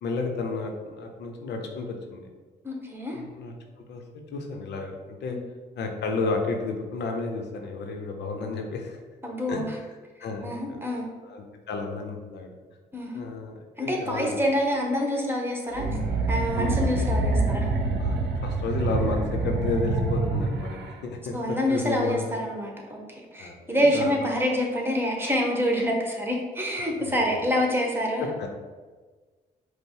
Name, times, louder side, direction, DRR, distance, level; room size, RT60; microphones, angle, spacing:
voice 1, 0.0-2.3 3.1-3.5 3.9-4.0 4.3-5.4 5.8-9.0 9.5-9.6 10.2-10.8 11.2-12.5 13.1-14.3 16.6-16.8 18.0-22.4 23.4-24.1 27.0-27.1 28.2-28.5, left 4 dB, 70° left, 3 dB, 0.6 m, -32 dB
voice 2, 2.6-3.2 5.3-5.4 9.2-9.8 10.4-11.1 12.9-13.2 13.8-15.8 16.3-17.7 21.3-28.3, equal, 10° right, 0 dB, 1.3 m, -27 dB
sound 1, 15.7-21.0, right 3 dB, 70° right, 0.7 m, -26 dB
5.1 x 2.0 x 4.6 m, 1.4 s
hypercardioid pair, 45°, 18 cm